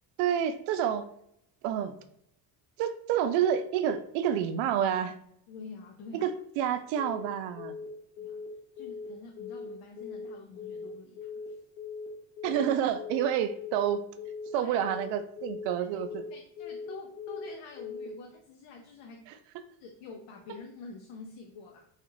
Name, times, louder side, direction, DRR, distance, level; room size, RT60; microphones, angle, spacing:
voice 1, 0.2-1.1 1.6-1.9 2.8-5.2 6.1-7.7 12.4-14.1 14.5-16.2 19.3-19.4, right 9 dB, 90° right, 10 dB, 0.5 m, -29 dB
voice 2, 5.5-6.3 8.2-8.4 8.7-11.6 14.5-14.8 15.7-15.9 16.3-19.3 19.8-21.9, left 4 dB, 80° left, 2 dB, 0.7 m, -47 dB
Telephone, 7.0-7.3 7.6-7.9 8.2-8.5 8.8-9.1 9.4-9.7 10.0-10.3 10.6-10.9 11.2-11.5 11.8-12.1 12.4-12.7 13.0-13.3 13.6-13.9 14.2-14.5 14.8-15.1 15.4-15.7 16.0-16.3 16.6-16.9 17.2-17.5 17.8-18.1, left 6 dB, 45° left, 1.3 m, -40 dB
3.9 x 2.5 x 3.0 m, 0.71 s
cardioid pair, 130°, 42 cm